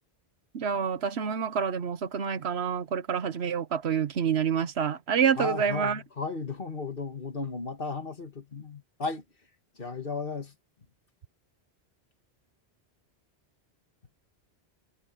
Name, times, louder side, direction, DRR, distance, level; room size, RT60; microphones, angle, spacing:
voice 1, 0.5-6.0, right 7 dB, 80° right, 1.2 m, -27 dB
voice 2, 5.4-9.2 9.8-10.5, left 4 dB, 60° left, 2.4 m, -35 dB
omnidirectional pair, 1.1 m